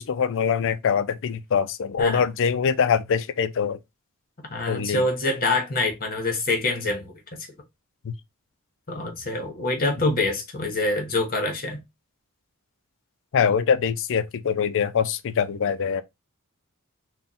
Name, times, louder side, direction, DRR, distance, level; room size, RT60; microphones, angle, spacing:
voice 1, 0.0-3.8 4.7-5.1 8.0-8.1 13.3-16.0, left 6 dB, 60° left, 0.4 m, -23 dB
voice 2, 4.5-7.5 8.9-11.8, left 2 dB, 40° left, 1.2 m, -26 dB
3.7 x 2.2 x 4.1 m
head